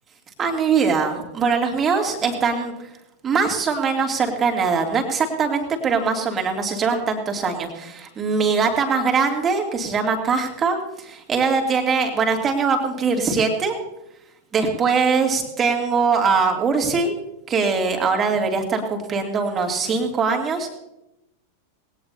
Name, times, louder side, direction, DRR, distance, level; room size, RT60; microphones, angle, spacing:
voice 1, 0.4-2.7 3.2-13.7 14.5-17.1 17.5-20.7, right 5 dB, 25° right, 3 dB, 2.7 m, -22 dB
20.0 x 18.0 x 2.8 m, 0.88 s
figure-of-eight pair, 90°, 0 cm